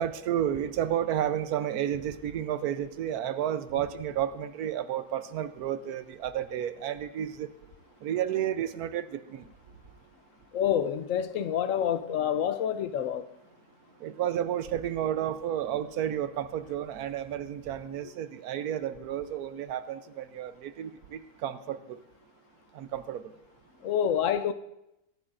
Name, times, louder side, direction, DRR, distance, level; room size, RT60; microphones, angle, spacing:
voice 1, 0.0-7.5 8.0-9.4 14.0-22.0 22.7-23.2, right 10 dB, 80° right, 1.1 m, -31 dB
voice 2, 10.5-13.3 23.8-24.5, left 9 dB, 65° left, 0.9 m, -27 dB
22.5 x 11.0 x 2.5 m
omnidirectional pair, 1.6 m